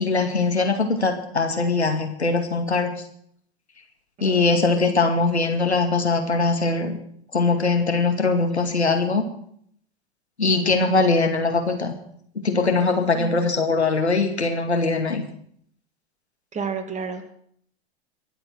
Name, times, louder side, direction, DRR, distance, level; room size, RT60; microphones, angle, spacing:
voice 1, 0.0-2.9 4.2-7.0 7.3-9.2 10.4-11.9 12.4-15.2, left 3 dB, 90° left, 4 dB, 2.3 m, -21 dB
voice 2, 4.2-4.7 13.2-13.3 16.5-17.3, right 5 dB, 20° right, 7 dB, 2.2 m, -31 dB
23.0 x 7.8 x 6.2 m, 0.66 s
figure-of-eight pair, 95°, 32 cm